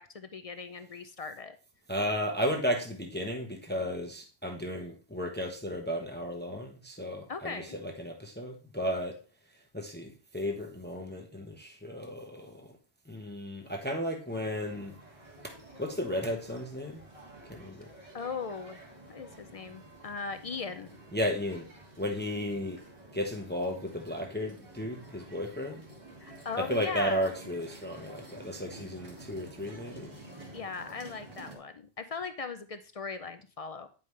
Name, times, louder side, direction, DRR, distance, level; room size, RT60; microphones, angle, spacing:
voice 1, 0.0-1.6 7.3-7.8 18.1-20.9 22.3-22.5 26.2-27.3 30.5-33.9, left 5 dB, 50° left, 9 dB, 0.4 m, -39 dB
voice 2, 1.9-9.2 9.7-12.7 13.1-14.9 15.4-15.5 15.8-17.0 17.5-17.9 21.1-21.7 22.0-22.8 23.1-25.8 26.6-30.1, equal, 10° left, 3 dB, 0.8 m, -34 dB
sound 1, 14.3-31.6, right 1 dB, 30° right, 1.8 m, -50 dB
9.3 x 5.3 x 3.2 m, 0.37 s
omnidirectional pair, 1.1 m